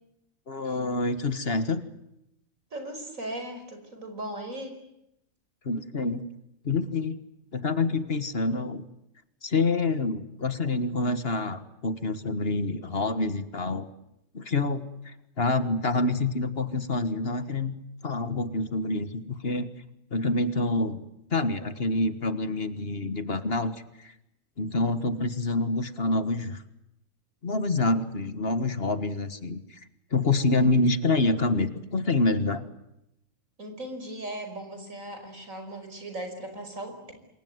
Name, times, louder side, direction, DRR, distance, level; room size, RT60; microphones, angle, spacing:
voice 1, 0.5-1.8 5.7-6.2 6.6-7.2 7.5-8.9 9.4-13.9 14.3-17.7 18.0-19.7 20.1-21.0 21.3-24.1 24.6-26.6 27.4-29.8 30.1-32.6, left 2 dB, 50° left, 11 dB, 1.7 m, -27 dB
voice 2, 2.7-4.8 33.6-37.1, right 1 dB, 80° right, 6 dB, 5.7 m, -38 dB
28.0 x 22.5 x 9.5 m, 0.85 s
omnidirectional pair, 1.4 m